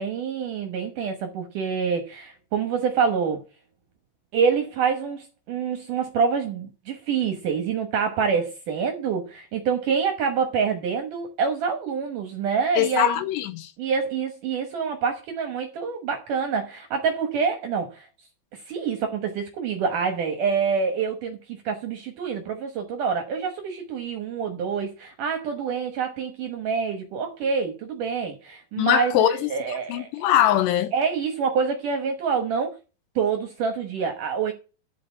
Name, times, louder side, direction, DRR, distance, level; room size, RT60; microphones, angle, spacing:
voice 1, 0.0-3.4 4.3-13.2 13.8-18.1 18.5-30.1 30.9-32.7 33.2-34.5, right 6 dB, 75° right, 1.9 m, -26 dB
voice 2, 12.7-13.7 28.8-30.9, left 12 dB, 80° left, 2.7 m, -22 dB
13.0 x 4.5 x 7.0 m
omnidirectional pair, 5.4 m